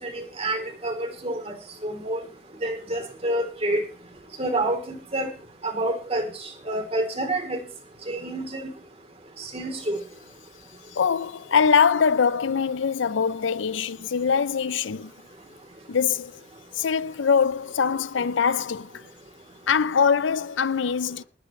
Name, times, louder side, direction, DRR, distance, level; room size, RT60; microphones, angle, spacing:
voice 1, 0.0-1.6 1.8-2.2 2.6-3.8 4.4-5.3 5.6-7.6 8.1-8.7 9.4-10.0, right 1 dB, 30° right, 3.4 m, -28 dB
voice 2, 10.9-15.1 15.9-16.4 16.7-19.1 19.7-21.2, left 6 dB, 85° left, 0.5 m, -23 dB
20.0 x 10.5 x 3.2 m
head